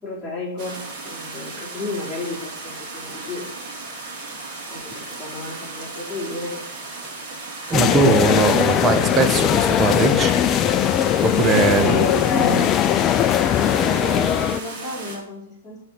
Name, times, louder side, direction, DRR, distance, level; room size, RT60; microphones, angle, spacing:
voice 1, 0.0-3.5 4.7-6.6 11.5-12.7 13.6-15.8, left 2 dB, 10° left, -7 dB, 4.2 m, -31 dB
sound 1, 0.6-15.2, right 3 dB, 35° right, 2.8 m, -36 dB
sound 2, 7.7-14.6, left 10 dB, 30° left, 0.4 m, -19 dB
voice 2, 7.7-10.3 11.2-12.0 12.3-12.5, right 3 dB, 20° right, 6 dB, 1.1 m, -20 dB
10.0 x 4.4 x 6.4 m, 0.74 s
hypercardioid pair, 110°, 0 cm